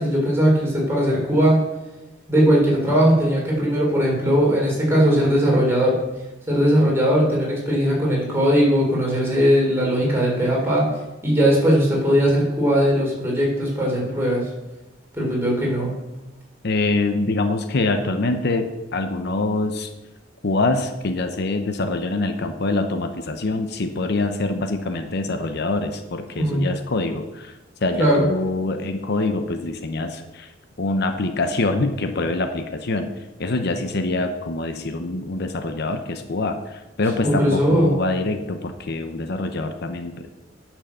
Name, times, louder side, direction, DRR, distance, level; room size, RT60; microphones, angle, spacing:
voice 1, 0.0-1.6 2.3-6.0 6.5-10.9 11.2-14.4 15.2-15.9 26.4-26.7 28.0-28.2 37.4-37.9, equal, 15° right, -4 dB, 3.7 m, -19 dB
voice 2, 16.6-19.9 20.4-27.5 27.8-30.5 30.8-33.1 33.4-40.3, left 2 dB, 55° left, 7 dB, 0.8 m, -25 dB
10.0 x 6.2 x 7.0 m, 1.0 s
head